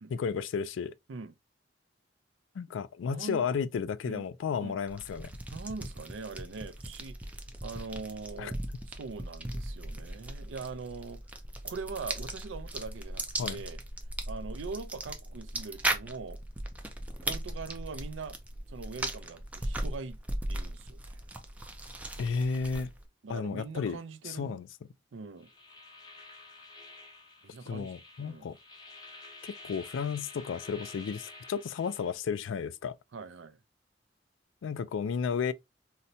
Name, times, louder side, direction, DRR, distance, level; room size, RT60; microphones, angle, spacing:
voice 1, 0.1-0.9 2.5-5.3 8.4-8.5 13.4-13.6 22.2-22.9 23.3-24.0 24.2-24.7 27.7-28.6 29.4-32.9 34.6-35.5, left 6 dB, 85° left, 0.3 m, -33 dB
voice 2, 3.0-3.4 4.0-4.2 4.6-4.8 5.5-11.2 11.6-13.8 14.3-16.4 17.2-18.4 18.7-20.2 20.5-21.2 23.2-24.6 25.1-25.5 27.4-27.9 28.2-28.5 33.1-33.6, right 4 dB, 85° right, 0.4 m, -42 dB
sound 1, 4.9-23.1, right 1 dB, 10° right, 0.4 m, -38 dB
sound 2, 25.4-32.2, left 3 dB, 20° left, 0.7 m, -50 dB
4.0 x 2.1 x 2.6 m
head